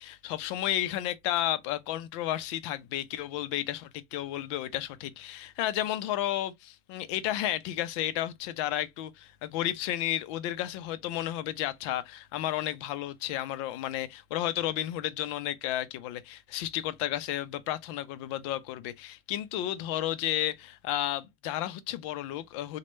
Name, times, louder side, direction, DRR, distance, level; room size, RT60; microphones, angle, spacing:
voice 1, 0.0-22.8, left 13 dB, 55° left, 0.5 m, -32 dB
3.1 x 2.2 x 3.0 m
supercardioid pair, 135°, 18 cm